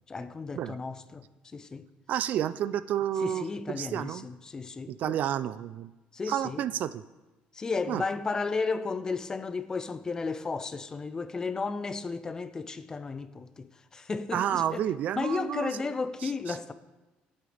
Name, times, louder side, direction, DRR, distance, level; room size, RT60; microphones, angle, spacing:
voice 1, 0.1-1.3 1.5-1.9 3.2-5.2 6.1-6.6 7.5-14.9 15.2-16.7, left 4 dB, 20° left, 0.6 m, -33 dB
voice 2, 2.1-4.3 4.9-5.9 6.3-7.0 7.9-8.0 14.3-15.7 16.2-16.6, right 10 dB, 55° right, 0.4 m, -30 dB
25.5 x 8.8 x 3.4 m
cardioid pair, 150°, 3 cm